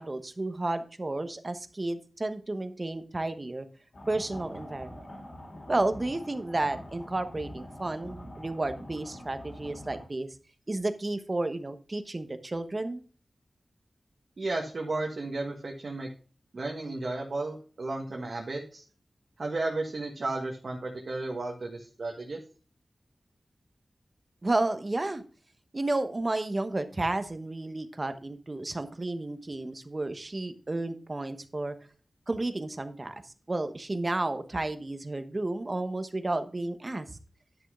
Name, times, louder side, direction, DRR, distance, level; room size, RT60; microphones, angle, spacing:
voice 1, 0.0-3.7 4.1-5.1 5.7-10.3 10.7-13.0 24.4-25.2 25.7-31.7 32.3-33.2 33.5-37.1, right 2 dB, 35° right, 9 dB, 1.1 m, -32 dB
sound 1, 3.9-10.1, left 1 dB, 65° left, 3.4 m, -45 dB
voice 2, 14.4-16.1 16.5-18.8 19.4-22.4, right 2 dB, 60° right, 0 dB, 1.5 m, -33 dB
10.5 x 6.4 x 3.7 m, 0.38 s
wide cardioid pair, 70°, 0 cm